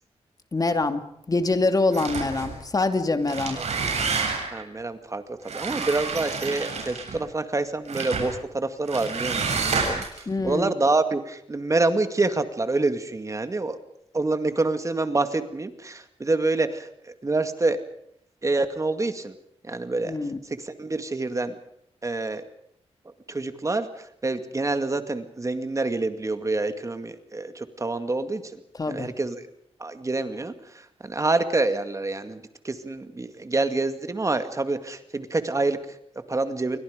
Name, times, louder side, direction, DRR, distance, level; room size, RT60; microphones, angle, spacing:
voice 1, 0.5-3.6 10.3-10.7 20.0-20.4 28.8-29.1, left 3 dB, 35° left, 8 dB, 2.5 m, -25 dB
sound 1, 1.9-2.6 3.1-4.6 5.5-7.2 7.9-8.3 8.9-10.2, right 4 dB, 75° right, 7.8 m, -29 dB
voice 2, 4.5-13.8 14.1-17.8 18.4-19.4 19.6-20.2 20.4-21.5 22.0-22.5 23.3-28.6 28.9-29.4 29.8-36.8, right 2 dB, 30° right, 9 dB, 2.1 m, -27 dB
29.0 x 23.5 x 5.1 m, 0.72 s
wide cardioid pair, 115°, 11 cm